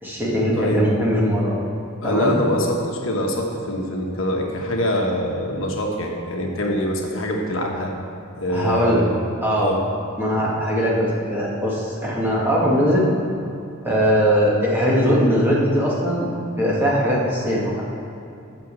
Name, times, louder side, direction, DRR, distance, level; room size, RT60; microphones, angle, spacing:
voice 1, 0.0-1.6 2.0-2.4 8.5-9.1 9.4-9.7 10.2-13.1 13.8-16.3 16.6-17.8, equal, 10° right, -6 dB, 1.9 m, -20 dB
voice 2, 0.5-0.9 2.0-7.9 8.4-9.1 9.6-9.9 10.4-10.5, left 1 dB, 65° left, 0 dB, 1.2 m, -24 dB
9.5 x 6.3 x 7.5 m, 2.7 s
head